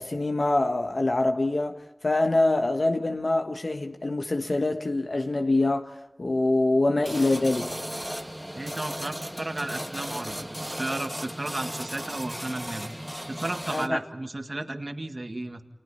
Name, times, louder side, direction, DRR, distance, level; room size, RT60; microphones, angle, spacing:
voice 1, 0.0-7.8 13.7-14.0, left 2 dB, 60° left, 1.3 m, -25 dB
sound 1, 7.0-13.9, equal, 5° right, 1.4 m, -36 dB
voice 2, 8.5-12.9 13.3-15.6, right 2 dB, 50° right, 2.0 m, -34 dB
30.0 x 28.5 x 4.3 m
wide cardioid pair, 55°, 0 cm